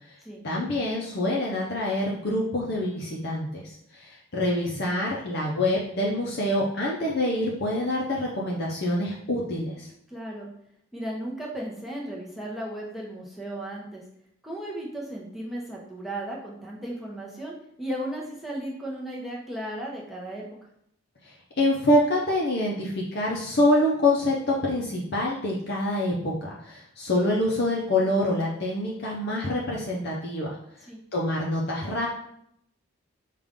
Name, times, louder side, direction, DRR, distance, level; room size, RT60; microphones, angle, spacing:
voice 1, 0.4-9.9 21.2-30.6 31.1-32.1, left 1 dB, 50° left, -3 dB, 0.6 m, -26 dB
voice 2, 10.1-10.5 10.9-14.0 14.4-20.4 30.9-31.0, right 1 dB, ahead, -4 dB, 0.8 m, -35 dB
5.1 x 2.4 x 3.6 m, 0.72 s
head